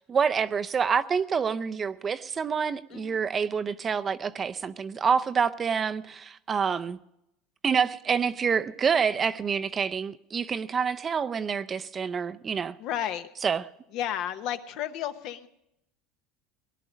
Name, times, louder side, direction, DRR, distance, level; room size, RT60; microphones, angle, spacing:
voice 1, 0.0-7.0 7.6-12.7 13.4-13.6, right 6 dB, 25° right, 0.5 m, -27 dB
voice 2, 2.9-3.2 12.8-13.3 13.9-15.5, left 10 dB, 60° left, 0.9 m, -32 dB
18.5 x 11.0 x 5.1 m
supercardioid pair, 120°, 0 cm